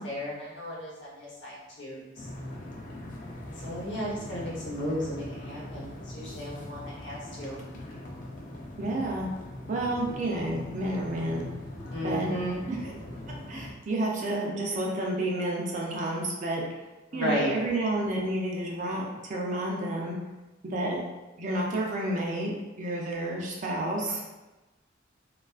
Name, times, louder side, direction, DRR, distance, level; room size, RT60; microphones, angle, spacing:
voice 1, 0.0-2.2 3.6-7.6 11.9-12.6 17.1-17.5, equal, 70° left, -6 dB, 0.8 m, -34 dB
sound 1, 2.2-13.7, left 1 dB, 45° left, 0.4 m, -41 dB
voice 2, 8.8-9.3 9.7-11.5 12.0-12.3 12.7-12.9 13.5-16.6 17.1-20.2 20.6-21.0 21.4-24.3, right 1 dB, 40° right, -2 dB, 0.4 m, -30 dB
2.3 x 2.2 x 2.3 m, 1.1 s
head